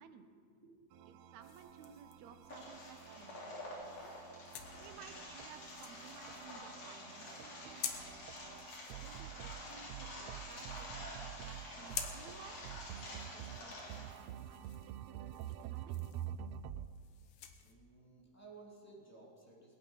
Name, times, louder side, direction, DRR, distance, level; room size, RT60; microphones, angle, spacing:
voice 1, 0.0-1.2 17.6-19.8, right 3 dB, 5° left, -4 dB, 2.7 m, -58 dB
Fluffy Song Intro, 0.9-16.9, right 11 dB, 90° right, 1.4 m, -49 dB
voice 2, 1.1-4.1 4.7-8.1 8.9-12.8 13.1-16.0, right 7 dB, 75° right, 9 dB, 2.0 m, -58 dB
sound 1, 1.4-17.7, left 8 dB, 65° left, 1.6 m, -51 dB
sound 2, 2.5-14.1, left 2 dB, 85° left, 4.3 m, -49 dB
21.5 x 9.0 x 5.7 m, 2.1 s
omnidirectional pair, 3.4 m